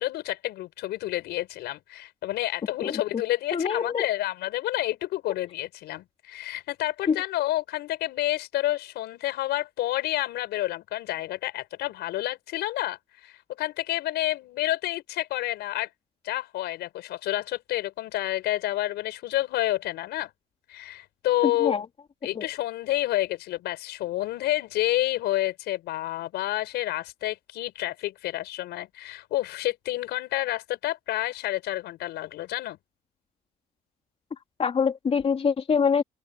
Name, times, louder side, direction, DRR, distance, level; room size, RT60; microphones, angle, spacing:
voice 1, 0.0-13.0 13.2-15.9 16.2-20.3 20.7-21.8 22.2-32.8, left 15 dB, 80° left, 5.9 m, -29 dB
voice 2, 3.5-4.1 7.1-7.2 21.6-21.9 22.3-22.5 34.6-36.0, left 6 dB, 35° left, 3.5 m, -24 dB
cardioid pair, 110°, 17 cm